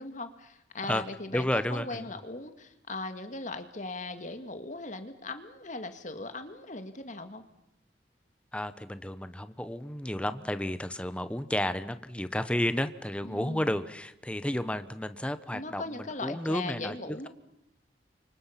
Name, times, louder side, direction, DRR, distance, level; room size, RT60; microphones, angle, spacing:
voice 1, 0.0-7.4 13.2-13.7 15.5-17.3, left 2 dB, 45° left, 8 dB, 2.0 m, -39 dB
voice 2, 1.3-2.1 8.5-17.0, left 1 dB, 5° left, 11 dB, 1.0 m, -32 dB
29.0 x 25.0 x 5.8 m, 0.84 s
head